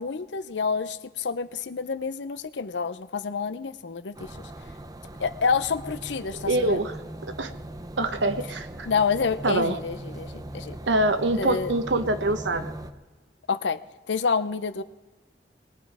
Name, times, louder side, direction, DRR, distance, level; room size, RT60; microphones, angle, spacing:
voice 1, 0.0-4.5 5.2-6.8 8.9-10.8 11.3-11.7 13.5-13.8 14.1-14.8, left 5 dB, 80° left, 13 dB, 0.6 m, -28 dB
sound 1, 4.1-12.9, right 1 dB, 20° right, 0.6 m, -40 dB
voice 2, 6.5-7.0 7.4-7.5 8.0-8.9 9.4-9.8 10.9-12.7, right 2 dB, 90° right, 9 dB, 1.1 m, -24 dB
20.5 x 9.3 x 4.8 m, 1.2 s
head